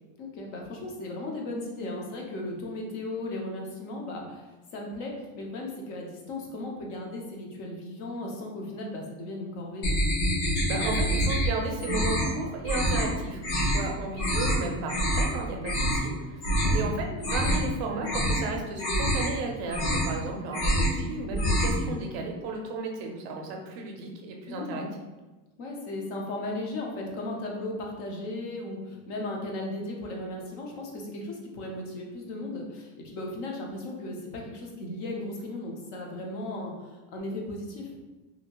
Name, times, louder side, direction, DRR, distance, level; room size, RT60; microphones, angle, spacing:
voice 1, 0.2-9.9 16.5-16.8 24.5-24.9 25.6-38.0, left 2 dB, 45° left, 0 dB, 0.6 m, -36 dB
sound 1, 9.8-11.5 11.8-12.3 12.6-13.1 13.4-13.8 14.2-14.6 14.9-15.3 15.6-16.0 16.4-16.8 17.1-17.7 18.0-18.4 18.8-19.3 19.6-20.2 20.5-21.0 21.3-21.8, equal, 65° left, 1.1 m, -26 dB
voice 2, 10.7-24.8, right 3 dB, 50° right, 1 dB, 0.5 m, -34 dB
2.8 x 2.5 x 2.9 m, 1.2 s
cardioid pair, 175°, 42 cm